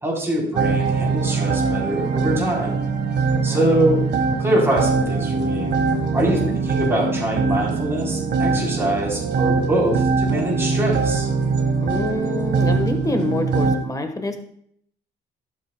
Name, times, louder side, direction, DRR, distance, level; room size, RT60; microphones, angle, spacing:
voice 1, 0.0-2.8 3.4-4.0 4.4-5.7 6.1-6.4 6.7-11.3, right 1 dB, 15° right, -4 dB, 3.5 m, -23 dB
sound 1, 0.6-13.8, right 4 dB, 70° right, 1.4 m, -22 dB
voice 2, 3.3-3.8 6.2-6.6 11.8-14.4, left 2 dB, 20° left, 6 dB, 1.2 m, -26 dB
11.5 x 8.7 x 2.2 m, 0.67 s
cardioid pair, 100°, 19 cm